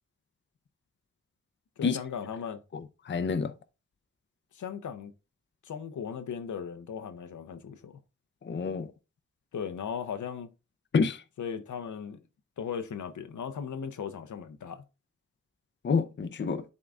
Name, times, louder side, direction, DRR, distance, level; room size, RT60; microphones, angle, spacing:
voice 1, 1.8-2.6 4.5-5.1 5.6-8.0 9.5-10.5 11.4-12.2 12.6-14.8, left 7 dB, 80° left, 0.7 m, -37 dB
voice 2, 2.7-3.5 8.4-8.9 10.9-11.2 15.8-16.6, left 5 dB, 40° left, 0.5 m, -28 dB
11.0 x 3.8 x 2.4 m
wide cardioid pair, 75°, 30 cm